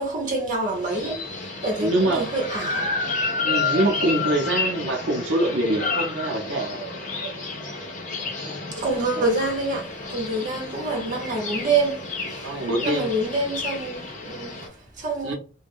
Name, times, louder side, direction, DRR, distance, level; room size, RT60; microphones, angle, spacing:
voice 1, 0.0-2.9 8.7-15.3, right 2 dB, 45° right, 1.0 m, -27 dB
sound 1, 0.7-14.7, left 3 dB, 40° left, 0.7 m, -30 dB
voice 2, 1.8-2.3 3.4-6.8 9.1-9.2 12.4-13.1 15.2-15.3, right 1 dB, 85° right, 0.7 m, -24 dB
2.5 x 2.2 x 3.5 m
head